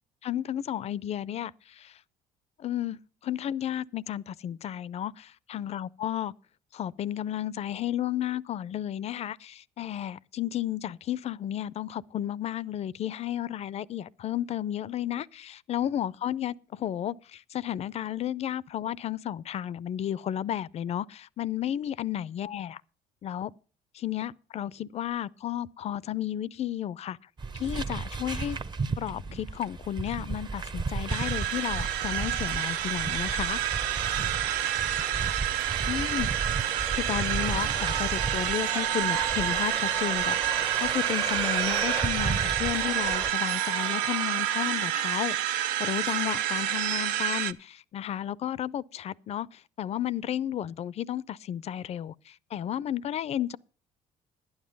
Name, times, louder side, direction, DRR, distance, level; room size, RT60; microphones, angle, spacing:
voice 1, 0.2-2.0 2.6-5.2 5.5-6.3 6.7-22.8 23.2-23.5 23.9-27.2 27.5-28.6 29.0-33.6 35.9-36.3 36.9-53.6, left 11 dB, 45° left, 0.5 m, -33 dB
sound 1, 27.4-43.3, right 4 dB, 30° right, 0.8 m, -34 dB
sound 2, 31.1-47.5, right 12 dB, 90° right, 0.5 m, -29 dB
11.5 x 9.6 x 5.3 m
supercardioid pair, 75°, 15 cm